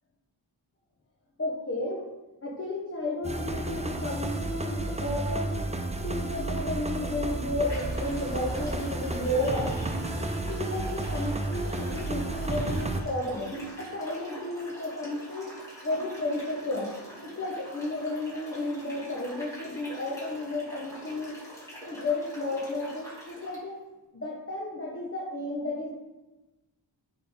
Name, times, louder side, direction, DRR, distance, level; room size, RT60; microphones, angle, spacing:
voice 1, 1.4-2.0 2.4-5.7 6.0-9.7 10.2-15.5 15.8-16.9 17.2-21.3 21.9-23.7 24.1-25.9, left 2 dB, 30° left, -3 dB, 1.1 m, -32 dB
sound 1, 3.2-13.0, right 2 dB, 15° right, 0.4 m, -32 dB
sound 2, 7.0-7.1 7.7-23.6, equal, 5° left, 2.1 m, -44 dB
10.0 x 3.4 x 3.6 m, 1.1 s
wide cardioid pair, 105°, 47 cm